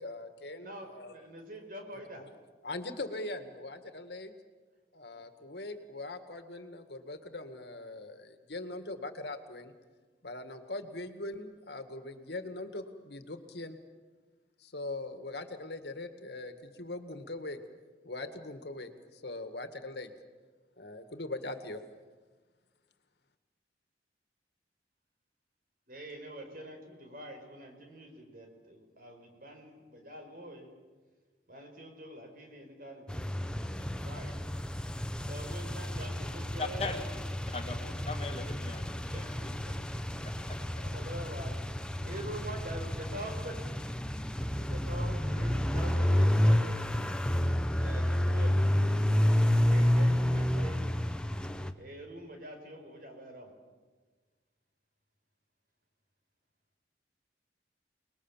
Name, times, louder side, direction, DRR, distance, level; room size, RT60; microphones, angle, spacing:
voice 1, 0.0-1.1 2.1-2.2 2.6-4.3 4.9-9.7 10.2-13.8 14.6-17.6 18.0-20.1 20.8-21.8, left 2 dB, 65° left, 8 dB, 2.0 m, -41 dB
voice 2, 0.6-2.2 25.9-30.7 31.5-34.4 35.3-36.9 39.1-39.7 40.2-40.3 40.6-43.6 44.5-46.8 47.8-50.8 51.8-53.5, right 1 dB, 50° right, 4 dB, 5.1 m, -45 dB
sound 1, 33.1-51.7, left 1 dB, 5° left, 0.9 m, -30 dB
voice 3, 36.6-37.0 37.5-39.4, left 3 dB, 35° left, 4 dB, 2.2 m, -38 dB
29.5 x 20.5 x 7.4 m, 1.4 s
head